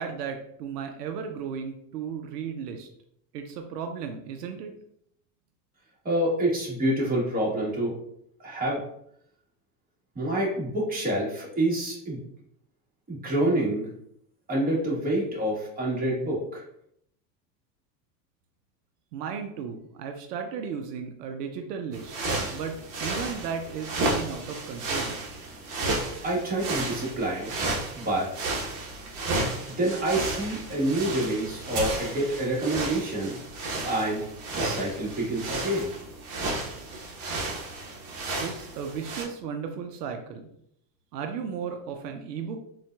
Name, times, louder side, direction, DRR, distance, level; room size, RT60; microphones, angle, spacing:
voice 1, 0.0-2.9 3.3-4.7 19.1-22.2 22.5-25.2 38.4-40.5 41.1-42.6, right 6 dB, 85° right, 5 dB, 0.6 m, -35 dB
voice 2, 6.0-8.0 8.4-8.8 10.1-12.2 13.1-13.9 14.5-16.6 26.2-27.6 27.9-28.5 29.8-33.4 33.8-34.3 34.5-35.9, right 1 dB, 20° right, -5 dB, 1.3 m, -27 dB
sound 1, 21.9-39.2, right 2 dB, 40° right, 1.0 m, -33 dB
3.8 x 2.4 x 2.2 m, 0.72 s
hypercardioid pair, 100°, 47 cm